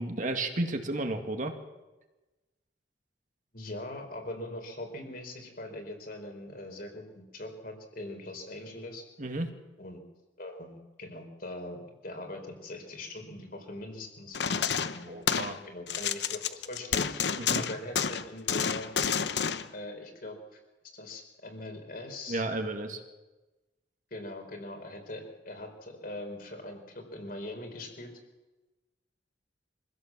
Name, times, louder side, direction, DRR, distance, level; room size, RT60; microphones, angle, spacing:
voice 1, 0.0-1.5 9.2-9.5 15.1-15.6 17.4-17.6 22.3-23.0, right 2 dB, 45° right, 5 dB, 2.1 m, -32 dB
voice 2, 3.5-9.0 9.8-10.0 10.4-15.2 15.6-17.3 17.5-18.9 19.7-20.4 20.9-22.4 24.1-28.1, left 1 dB, 55° left, 4 dB, 4.3 m, -41 dB
sound 1, 14.3-15.6 15.9-19.7, left 7 dB, 70° left, 0.9 m, -29 dB
25.0 x 16.0 x 7.4 m, 1.1 s
head